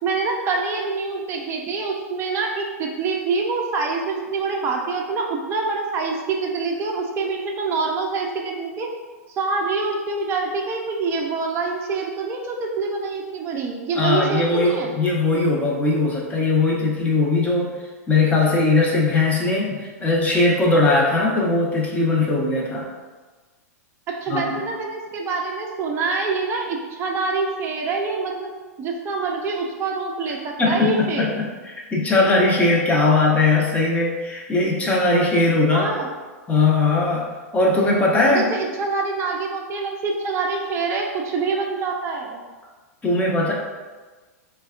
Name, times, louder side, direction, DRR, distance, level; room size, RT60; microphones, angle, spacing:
voice 1, 0.0-8.9 9.4-14.9 24.2-28.5 28.8-31.3 35.7-36.1 38.3-42.4, right 4 dB, 30° right, 0 dB, 0.5 m, -25 dB
voice 2, 14.0-17.7 18.1-22.9 24.3-24.6 30.6-31.5 31.7-35.9 36.5-38.5 43.0-43.5, left 3 dB, 15° left, -2 dB, 0.7 m, -19 dB
4.0 x 2.2 x 2.3 m, 1.3 s
hypercardioid pair, 110°, 9 cm